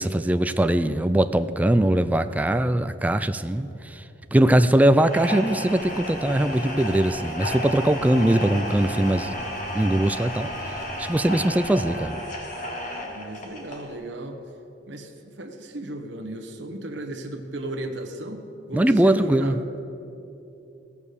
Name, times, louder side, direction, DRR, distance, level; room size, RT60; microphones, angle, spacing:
voice 1, 0.0-4.0 4.3-9.3 9.7-10.5 11.0-12.2 18.7-19.6, right 1 dB, 10° right, 9 dB, 0.3 m, -21 dB
sound 1, 5.0-13.9, equal, 45° left, 1.7 m, -33 dB
sound 2, 5.8-12.0, equal, 15° left, 3.7 m, -46 dB
voice 2, 12.9-14.4 14.9-18.4 18.7-19.8, right 1 dB, 75° right, 4 dB, 1.2 m, -35 dB
17.0 x 7.2 x 6.7 m, 2.8 s
head